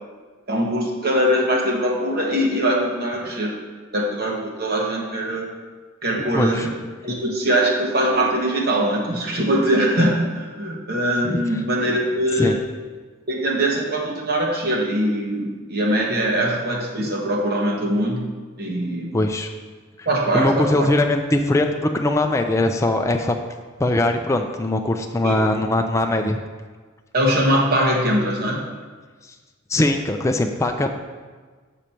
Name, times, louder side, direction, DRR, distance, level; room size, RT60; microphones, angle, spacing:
voice 1, 0.5-3.6 3.9-5.5 6.0-6.7 7.0-12.6 13.3-18.3 18.6-19.1 20.0-20.9 25.2-25.4 27.1-28.6, right 1 dB, 50° right, -1 dB, 1.2 m, -22 dB
voice 2, 6.3-6.7 11.2-11.6 12.4-12.5 19.1-19.5 20.0-20.1 20.3-23.4 23.8-26.4 29.7-31.0, left 2 dB, 15° left, 4 dB, 0.4 m, -21 dB
6.7 x 6.2 x 4.4 m, 1.4 s
head